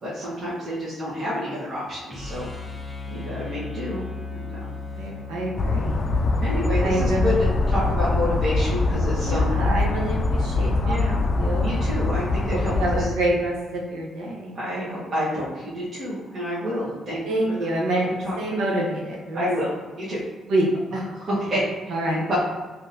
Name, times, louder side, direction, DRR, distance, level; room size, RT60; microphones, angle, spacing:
voice 1, 0.0-2.5 3.1-4.6 6.4-9.5 10.9-11.2 11.6-13.1 14.5-17.2 17.5-17.7 18.2-18.4 19.3-20.2 21.2-21.7 22.1-22.4, equal, 50° right, -10 dB, 1.2 m, -29 dB
sound 1, 2.0-8.1, left 3 dB, 5° left, 0.8 m, -37 dB
voice 2, 4.9-6.0 6.8-7.5 9.2-11.9 12.4-14.6 17.2-19.5 20.5-21.0 21.9-22.3, right 1 dB, 85° right, -2 dB, 0.8 m, -27 dB
sound 2, 5.6-13.1, left 3 dB, 40° left, 0.4 m, -23 dB
3.6 x 2.8 x 2.6 m, 1.3 s
cardioid pair, 90°, 0 cm